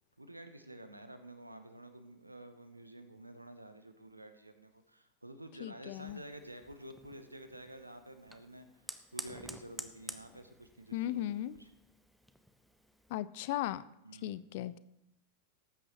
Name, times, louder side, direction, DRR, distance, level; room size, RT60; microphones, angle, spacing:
voice 1, 0.2-11.3 11.5-11.7 14.0-14.4, right 1 dB, 85° right, 9 dB, 0.9 m, -50 dB
voice 2, 5.6-6.2 10.9-11.6 13.1-13.8 14.2-14.8, left 13 dB, 50° left, 17 dB, 0.4 m, -37 dB
Fire, 5.9-13.2, equal, ahead, 0.7 m, -51 dB
18.5 x 8.8 x 3.0 m, 0.82 s
figure-of-eight pair, 90°, 0 cm